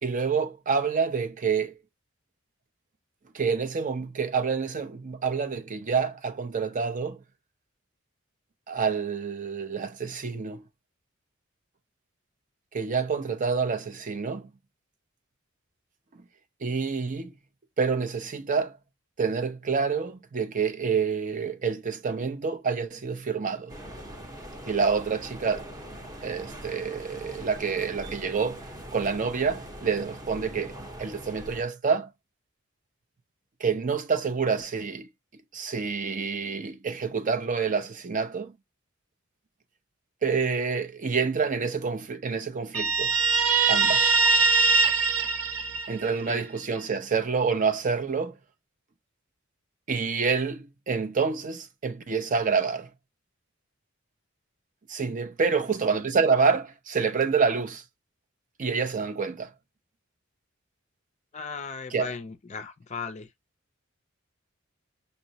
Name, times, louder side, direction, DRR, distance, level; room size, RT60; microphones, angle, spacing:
voice 1, 0.0-1.8 3.3-7.2 8.7-10.6 12.7-14.5 16.6-17.3 17.8-18.8 19.2-23.7 24.7-25.7 26.2-28.6 28.9-30.7 31.0-32.1 33.6-35.1 35.5-38.5 40.2-43.1 43.7-44.2 45.9-48.4 49.9-52.9 54.9-57.8 58.6-59.5 61.9-62.1, right 5 dB, 40° right, 0.5 m, -27 dB
sound 1, 23.7-31.6, equal, 20° right, 0.8 m, -42 dB
Guitar, 42.7-46.3, right 4 dB, 90° right, 0.5 m, -22 dB
voice 2, 61.3-63.3, left 5 dB, 35° left, 0.4 m, -37 dB
5.4 x 2.0 x 2.7 m
head